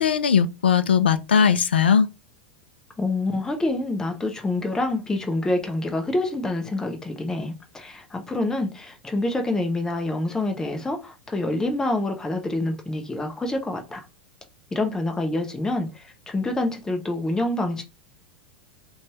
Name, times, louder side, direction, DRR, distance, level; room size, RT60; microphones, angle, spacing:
voice 1, 0.0-2.1, left 7 dB, 75° left, 0.3 m, -19 dB
voice 2, 3.0-14.1 14.7-17.8, left 2 dB, 10° left, 0.6 m, -27 dB
2.6 x 2.3 x 2.9 m
figure-of-eight pair, 90°, 6 cm